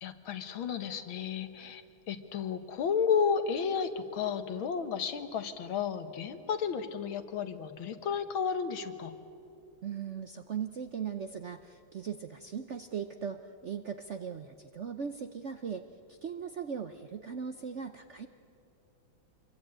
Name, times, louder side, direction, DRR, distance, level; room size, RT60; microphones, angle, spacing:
voice 1, 0.0-9.1, left 6 dB, 90° left, 9 dB, 2.1 m, -32 dB
voice 2, 9.8-15.8 16.1-18.3, right 7 dB, 65° right, 8 dB, 0.7 m, -39 dB
26.0 x 23.0 x 8.9 m, 2.8 s
omnidirectional pair, 2.2 m